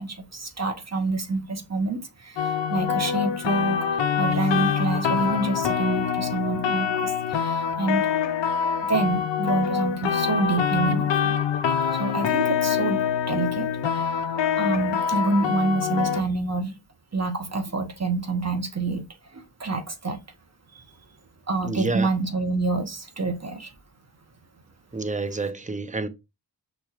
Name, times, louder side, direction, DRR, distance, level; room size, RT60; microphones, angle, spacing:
voice 1, 0.0-3.8 4.2-8.1 8.9-11.3 11.8-13.0 13.3-14.0 14.6-16.7 17.1-19.0 19.3-20.2 21.5-23.7, right 3 dB, 40° right, 1.0 m, -27 dB
sound 1, 2.4-16.2, left 7 dB, 85° left, 0.6 m, -25 dB
voice 2, 21.6-22.1 24.9-26.1, right 3 dB, 20° right, 0.7 m, -28 dB
6.0 x 3.3 x 2.4 m
cardioid pair, 40°, 42 cm